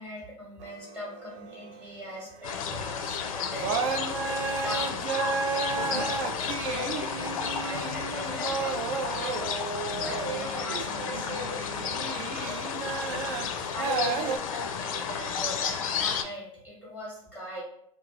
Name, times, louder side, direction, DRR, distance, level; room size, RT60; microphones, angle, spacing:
voice 1, 0.0-13.1 13.5-17.6, left 1 dB, 10° right, -4 dB, 1.0 m, -40 dB
sound 1, 0.6-2.1 3.0-3.2 3.5-14.4, right 5 dB, 55° right, 0.4 m, -33 dB
sound 2, 2.4-16.2, left 7 dB, 70° left, 0.4 m, -32 dB
2.9 x 2.3 x 2.8 m, 0.69 s
hypercardioid pair, 100°, 19 cm